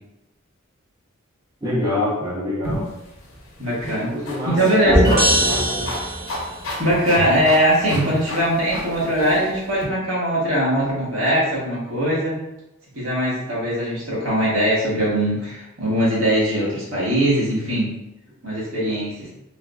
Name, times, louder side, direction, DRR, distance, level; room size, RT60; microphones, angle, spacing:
voice 1, 1.6-2.9 4.1-6.1, left 1 dB, 20° right, -7 dB, 0.5 m, -27 dB
sound 1, 2.6-9.9, left 1 dB, 70° left, 0.6 m, -33 dB
voice 2, 3.6-4.1 4.4-5.0 6.8-12.4 12.9-17.9 18.4-19.3, equal, 75° right, -6 dB, 1.1 m, -21 dB
sound 2, 4.9-6.6, right 1 dB, 45° right, 0.9 m, -19 dB
3.3 x 2.0 x 2.3 m, 0.88 s
head